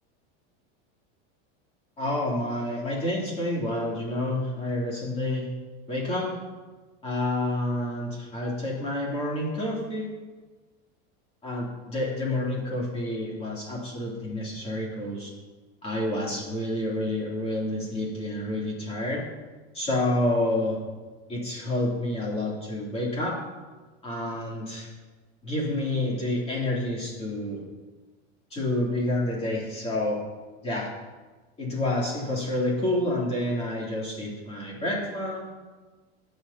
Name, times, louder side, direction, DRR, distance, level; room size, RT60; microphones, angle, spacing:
voice 1, 2.0-5.5 5.9-6.3 7.0-10.1 11.4-15.3 15.8-19.2 19.7-20.8 21.3-23.4 24.0-24.9 25.4-27.6 28.5-30.2 30.6-30.9 31.6-35.4, left 1 dB, 20° left, -4 dB, 2.9 m, -28 dB
20.0 x 6.7 x 2.8 m, 1.3 s
supercardioid pair, 155°, 32 cm